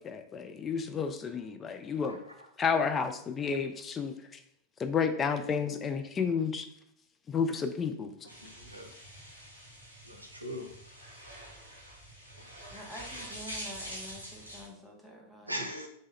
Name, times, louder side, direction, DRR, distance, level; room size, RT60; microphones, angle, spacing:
voice 1, 0.0-2.2 2.6-4.1 4.8-6.7 7.3-8.1, left 6 dB, 20° left, 7 dB, 0.3 m, -31 dB
voice 2, 2.1-2.5 8.2-8.9 10.0-10.7 15.5-15.9, equal, 85° right, 2 dB, 0.5 m, -40 dB
sound 1, 8.3-14.7, equal, 85° left, 1.0 m, -45 dB
voice 3, 12.7-15.6, equal, ahead, -3 dB, 0.8 m, -47 dB
3.1 x 2.2 x 3.4 m, 0.70 s
figure-of-eight pair, 90°, 0 cm